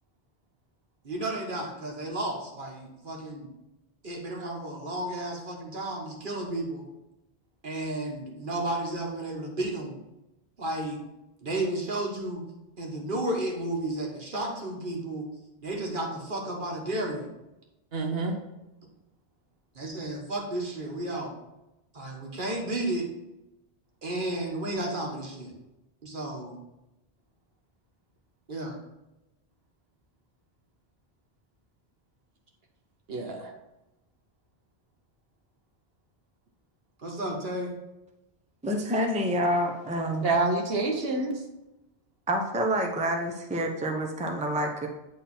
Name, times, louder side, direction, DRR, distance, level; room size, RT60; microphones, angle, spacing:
voice 1, 1.0-3.5 4.0-6.8 7.6-9.9 10.6-11.0 11.4-12.4 12.8-15.3 15.6-17.2 19.7-21.3 21.9-23.1 24.0-25.5 26.0-26.6 28.5-28.8 37.0-37.7, right 1 dB, 55° right, 0 dB, 1.5 m, -32 dB
voice 2, 17.9-18.4 33.1-33.5 40.2-41.4, right 3 dB, 70° right, 2 dB, 1.1 m, -27 dB
voice 3, 38.6-40.3 42.3-44.9, equal, 10° right, 2 dB, 0.6 m, -28 dB
8.6 x 3.9 x 4.2 m, 0.95 s
omnidirectional pair, 1.1 m